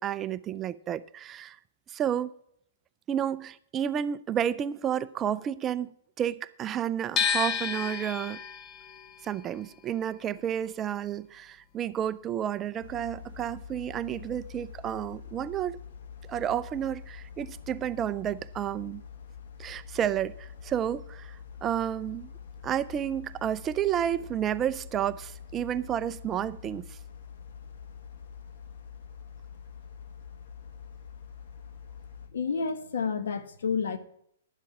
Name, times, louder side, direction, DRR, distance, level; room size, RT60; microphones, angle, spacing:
voice 1, 0.0-1.6 1.9-2.3 3.1-5.9 6.2-8.4 9.2-15.8 16.3-19.0 19.6-22.3 22.6-27.0, right 10 dB, 20° right, 0.4 m, -31 dB
sound 1, 7.2-13.2 13.5-14.8, left 6 dB, 20° left, 0.8 m, -33 dB
sound 2, 12.8-32.3, left 7 dB, 60° left, 1.5 m, -46 dB
voice 2, 32.3-34.0, left 5 dB, 80° left, 1.4 m, -30 dB
11.5 x 7.4 x 6.0 m
hypercardioid pair, 155°, 0 cm